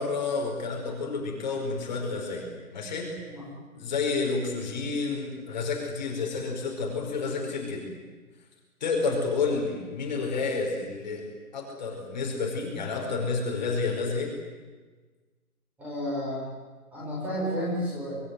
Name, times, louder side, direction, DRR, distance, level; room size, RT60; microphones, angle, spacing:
voice 1, 0.0-3.1 3.7-7.9 8.8-11.2 11.5-14.3, left 4 dB, 30° left, 0 dB, 5.1 m, -30 dB
voice 2, 15.8-16.4 16.9-18.2, equal, 5° right, -7 dB, 5.3 m, -31 dB
25.5 x 20.0 x 9.6 m, 1.4 s
hypercardioid pair, 170°, 45 cm